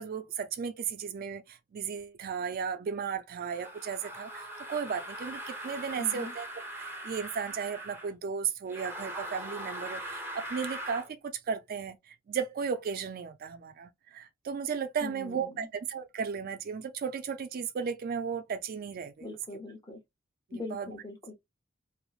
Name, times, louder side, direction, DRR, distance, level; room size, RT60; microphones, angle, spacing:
voice 1, 0.0-6.5 6.8-11.2 11.5-19.3 20.5-20.9, right 6 dB, 45° right, 0.3 m, -35 dB
sound 1, 3.5-8.1 8.7-11.1, right 1 dB, 10° right, 0.6 m, -41 dB
voice 2, 5.9-6.3 15.0-15.7 19.2-20.0 20.5-21.3, left 3 dB, 20° left, 0.9 m, -41 dB
3.0 x 2.0 x 2.3 m
head